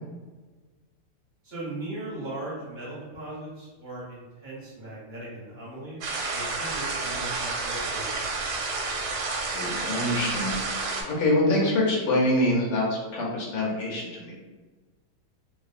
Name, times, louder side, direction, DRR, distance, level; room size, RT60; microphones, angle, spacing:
voice 1, 1.4-8.3, right 2 dB, 45° right, -8 dB, 0.6 m, -38 dB
sound 1, 6.0-11.0, right 3 dB, 85° right, 1.3 m, -30 dB
voice 2, 9.5-10.6 11.1-14.3, left 1 dB, 80° left, -4 dB, 1.4 m, -25 dB
3.2 x 2.0 x 2.4 m, 1.3 s
omnidirectional pair, 2.0 m